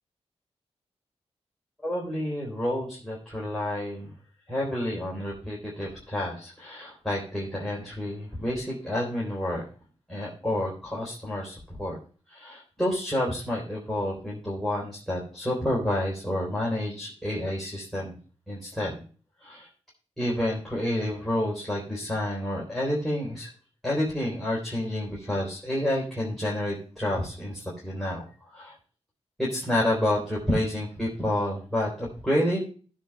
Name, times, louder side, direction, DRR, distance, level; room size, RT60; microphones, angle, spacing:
voice 1, 1.8-4.1 4.5-9.6 10.1-12.0 12.3-18.2 18.5-19.0 19.4-19.7 20.2-23.5 23.8-28.7 29.4-32.6, left 1 dB, ahead, -6 dB, 3.6 m, -29 dB
17.0 x 7.4 x 2.3 m, 0.39 s
wide cardioid pair, 85°, 11 cm